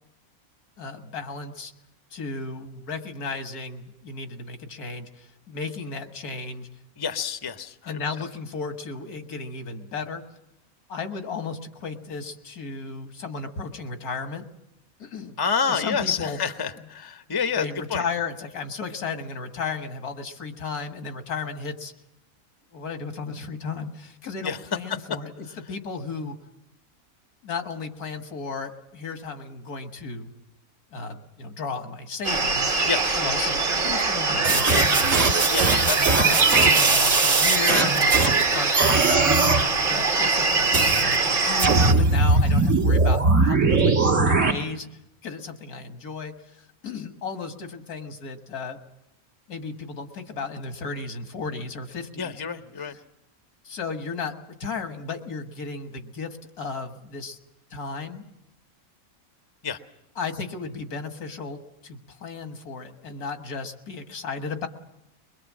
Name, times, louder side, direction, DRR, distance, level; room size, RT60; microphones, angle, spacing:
voice 1, 0.8-1.7 2.1-6.7 7.9-10.2 10.9-14.5 15.0-15.4 15.7-16.4 17.6-21.9 22.7-26.4 27.4-30.3 30.9-32.8 33.2-33.6 33.8-35.3 36.2-44.9 45.2-48.8 49.5-52.3 52.8-52.9 53.6-57.4 57.7-58.3 60.2-64.7, left 4 dB, 85° left, 7 dB, 2.0 m, -34 dB
voice 2, 7.0-8.0 15.4-17.6 17.9-18.0 24.4-24.6 32.8-33.5 35.5-36.1 52.2-53.0 59.6-59.8, left 6 dB, 20° left, 9 dB, 0.7 m, -28 dB
sound 1, 32.2-41.9, right 4 dB, 40° right, 1.4 m, -22 dB
sound 2, 34.4-38.4 38.7-39.6 40.7-41.2 41.6-44.5, right 3 dB, 55° right, 1.9 m, -20 dB
22.0 x 22.0 x 7.3 m, 0.86 s
omnidirectional pair, 1.5 m